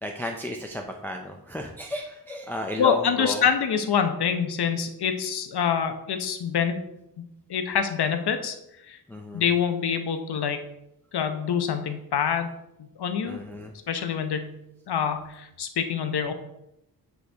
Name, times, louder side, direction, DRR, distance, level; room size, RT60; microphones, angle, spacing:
voice 1, 0.0-3.4 9.1-9.4 13.3-13.7, left 1 dB, 5° left, 2 dB, 0.4 m, -33 dB
voice 2, 2.8-6.8 7.5-8.6 8.9-9.0 9.3-10.6 11.1-12.5 12.8-13.4 13.9-14.5 14.9-16.3, left 7 dB, 90° left, 7 dB, 0.8 m, -26 dB
7.9 x 5.2 x 3.4 m, 0.85 s
wide cardioid pair, 155°, 38 cm